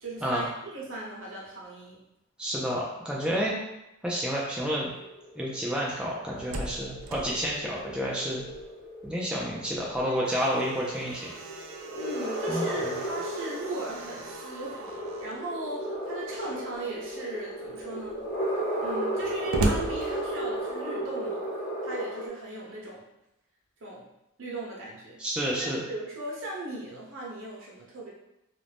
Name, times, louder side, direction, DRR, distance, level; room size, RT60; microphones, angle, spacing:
voice 1, 0.0-2.0 12.0-18.2 18.8-21.4 21.8-23.0 23.8-24.0 24.4-25.2 25.6-28.1, right 1 dB, 65° right, -4 dB, 0.8 m, -38 dB
voice 2, 2.4-3.6 4.0-4.9 5.4-8.4 9.0-11.3 12.5-12.7 12.9-13.0 25.2-25.8, equal, 5° right, -5 dB, 0.3 m, -30 dB
sound 1, 4.9-22.3, right 1 dB, 40° left, 0.7 m, -35 dB
Slam, 6.1-8.9 9.2-9.3 9.8-15.4 16.3-16.8 17.4-17.5 17.7-20.8, right 1 dB, 85° right, 0.4 m, -37 dB
2.5 x 2.1 x 3.3 m, 0.88 s
head